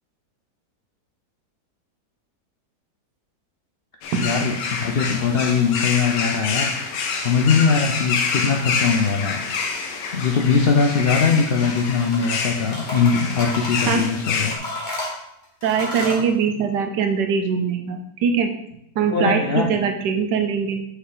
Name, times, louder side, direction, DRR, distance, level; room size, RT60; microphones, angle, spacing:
sound 1, 4.0-14.6, left 5 dB, 90° left, 1.5 m, -27 dB
voice 1, 4.2-6.7 7.2-9.4 10.1-14.6 19.1-19.8, left 5 dB, 70° left, 2 dB, 0.5 m, -21 dB
sound 2, 11.6-12.4 12.7-14.1 14.5-16.2, left 1 dB, 30° left, 1.5 m, -32 dB
voice 2, 15.6-18.5 19.0-20.9, right 6 dB, 90° right, 5 dB, 1.5 m, -22 dB
6.3 x 5.5 x 3.9 m, 0.77 s
omnidirectional pair, 1.8 m